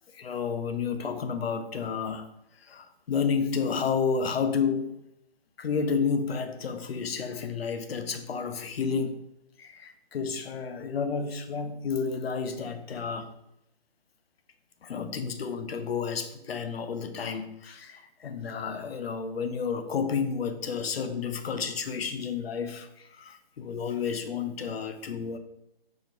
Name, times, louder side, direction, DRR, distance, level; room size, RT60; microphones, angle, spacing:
voice 1, 0.1-2.3 2.6-5.1 5.6-9.3 9.6-13.3 14.8-25.4, left 6 dB, 70° left, 0.6 m, -31 dB
4.4 x 3.4 x 3.1 m
hypercardioid pair, 165°, 31 cm